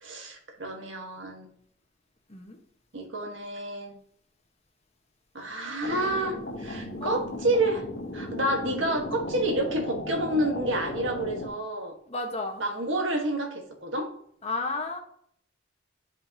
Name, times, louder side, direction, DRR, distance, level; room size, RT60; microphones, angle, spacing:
voice 1, 0.0-1.5 2.9-4.0 5.3-7.8 8.1-11.9 12.6-14.1, right 1 dB, 70° right, 3 dB, 1.7 m, -29 dB
sound 1, 5.8-11.5, left 1 dB, 60° left, 1.6 m, -36 dB
voice 2, 12.1-12.6 14.4-15.0, left 3 dB, 35° left, 2 dB, 1.4 m, -32 dB
10.5 x 5.2 x 2.9 m, 0.65 s
head